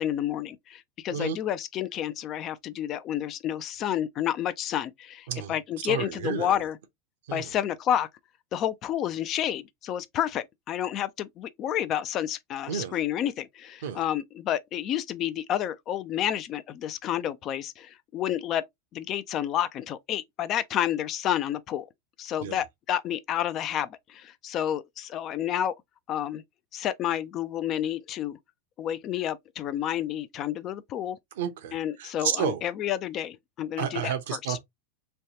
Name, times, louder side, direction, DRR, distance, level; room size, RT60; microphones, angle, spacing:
voice 1, 0.0-6.8 7.3-8.1 8.5-18.6 18.9-21.9 22.2-25.7 26.1-26.4 26.7-28.4 28.8-31.2 31.7-34.6, left 11 dB, 40° left, 0.4 m, -30 dB
voice 2, 5.8-6.5 7.3-7.5 12.7-13.0 13.8-14.0 22.4-22.6 31.4-32.6 33.8-34.6, right 8 dB, 75° right, 0.8 m, -31 dB
3.2 x 2.3 x 2.7 m
hypercardioid pair, 110°, 0 cm